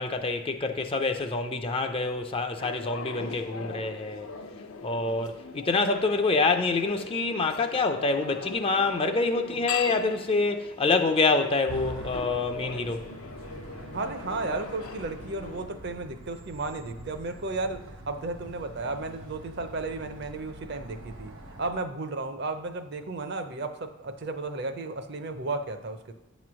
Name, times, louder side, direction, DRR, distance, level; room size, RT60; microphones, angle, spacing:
voice 1, 0.0-4.3 4.8-13.0, left 3 dB, 25° left, 0.4 m, -26 dB
sound 1, 2.6-15.7, left 5 dB, 75° left, 0.5 m, -40 dB
sound 2, 11.7-21.7, right 1 dB, 85° right, 1.4 m, -44 dB
voice 2, 13.9-26.1, right 3 dB, 50° right, 0.5 m, -34 dB
8.9 x 3.1 x 6.1 m
head